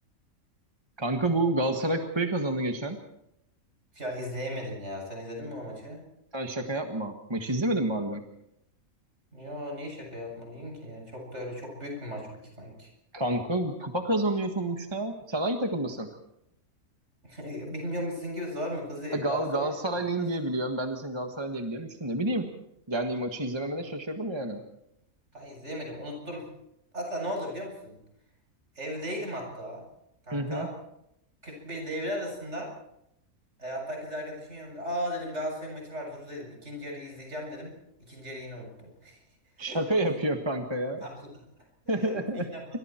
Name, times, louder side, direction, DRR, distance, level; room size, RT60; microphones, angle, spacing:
voice 1, 1.0-3.0 6.3-8.2 13.1-16.1 19.1-22.5 22.9-24.6 30.3-30.7 39.6-41.0 41.9-42.5, right 1 dB, 20° right, 4 dB, 1.6 m, -29 dB
voice 2, 3.9-6.0 9.3-12.3 12.6-12.9 17.2-19.7 20.2-20.3 25.3-26.4 26.9-28.0 28.8-29.8 30.3-30.7 31.4-32.7 33.6-37.7 38.0-39.2 39.6-39.8 41.0-41.3 41.8-42.6, equal, 50° right, 1 dB, 8.0 m, -36 dB
28.0 x 25.0 x 4.5 m, 0.81 s
omnidirectional pair, 1.5 m